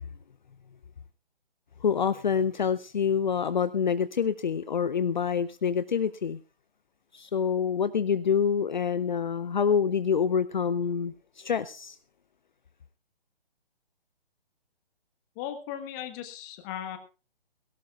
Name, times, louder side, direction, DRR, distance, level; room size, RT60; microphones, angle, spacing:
voice 1, 1.8-6.4 7.1-12.0, left 7 dB, 50° left, 14 dB, 0.6 m, -26 dB
voice 2, 15.3-17.0, left 10 dB, 20° left, 9 dB, 1.5 m, -37 dB
18.0 x 17.0 x 2.4 m, 0.33 s
figure-of-eight pair, 140°, 30 cm